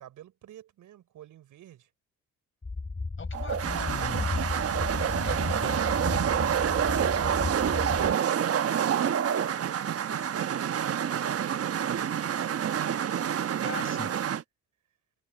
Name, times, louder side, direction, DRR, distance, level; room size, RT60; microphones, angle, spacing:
voice 1, 0.0-1.9 5.2-7.2 9.5-14.0, right 12 dB, 70° right, 6.1 m, -50 dB
sound 1, 2.6-8.1, left 3 dB, 25° left, 4.9 m, -33 dB
voice 2, 3.2-4.5 5.0-5.8 13.6-14.1, left 5 dB, 40° left, 5.3 m, -40 dB
sound 2, 3.3-14.4, right 9 dB, 50° right, 1.1 m, -28 dB
supercardioid pair, 70°, 31 cm